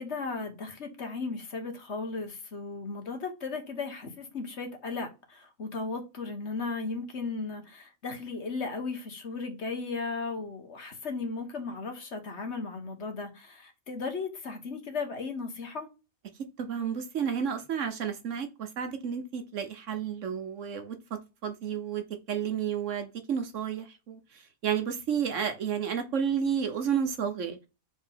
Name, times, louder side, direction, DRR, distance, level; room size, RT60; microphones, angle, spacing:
voice 1, 0.0-15.9, left 4 dB, 50° left, 1.5 m, -36 dB
voice 2, 16.6-21.0 21.4-24.2 24.6-27.6, right 7 dB, 60° right, 1.2 m, -31 dB
4.7 x 3.8 x 5.6 m
omnidirectional pair, 1.5 m